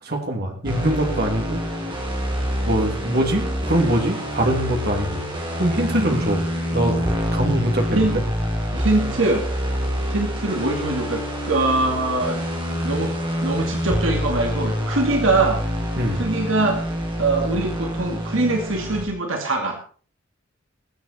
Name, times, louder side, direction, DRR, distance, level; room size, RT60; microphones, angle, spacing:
voice 1, 0.0-1.6 2.6-5.2 5.6-6.5 6.7-7.0 7.3-8.2 16.0-16.2, right 1 dB, 50° right, 2 dB, 3.0 m, -23 dB
sound 1, 0.6-19.1, equal, 25° right, 3.5 m, -26 dB
voice 2, 5.9-6.3 7.9-8.2 8.7-9.4 10.1-12.4 12.8-13.1 13.4-15.6 16.1-16.8 17.2-19.8, right 2 dB, 75° right, 3 dB, 2.4 m, -23 dB
21.5 x 8.2 x 4.4 m, 0.41 s
head